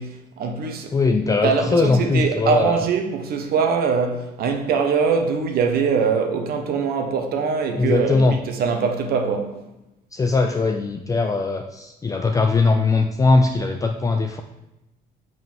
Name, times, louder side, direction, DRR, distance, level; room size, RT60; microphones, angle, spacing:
voice 1, 0.0-0.9 1.4-9.6, right 5 dB, 65° right, 1.2 m, -22 dB
voice 2, 0.9-2.8 7.8-8.4 10.1-14.4, left 3 dB, 20° left, 0.4 m, -20 dB
5.5 x 5.4 x 5.5 m
cardioid pair, 110°, 17 cm